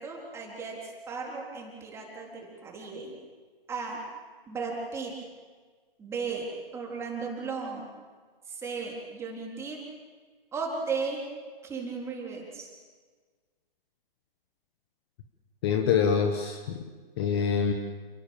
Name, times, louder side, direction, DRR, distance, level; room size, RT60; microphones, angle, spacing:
voice 1, 0.0-3.2 3.7-4.0 4.5-5.1 6.0-6.5 6.7-7.9 8.5-9.8 10.5-11.2 11.6-12.7, right 4 dB, 10° right, -1 dB, 3.8 m, -35 dB
voice 2, 15.6-16.8 17.2-17.7, left 6 dB, 25° left, 5 dB, 1.4 m, -25 dB
29.0 x 18.0 x 7.2 m, 1.5 s
figure-of-eight pair, 140°, 30 cm